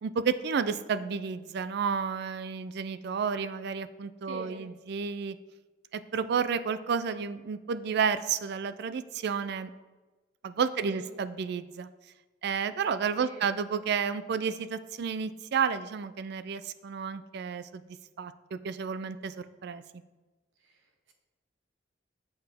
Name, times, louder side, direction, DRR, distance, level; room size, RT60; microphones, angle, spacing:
voice 1, 0.0-5.4 5.9-9.7 10.4-11.9 12.4-17.8 18.2-20.0, right 6 dB, 60° right, 13 dB, 0.4 m, -31 dB
voice 2, 4.2-4.7 10.7-11.1 13.2-13.4 20.6-21.1, right 2 dB, 80° right, 4 dB, 0.8 m, -45 dB
7.8 x 6.7 x 3.5 m, 1.2 s
head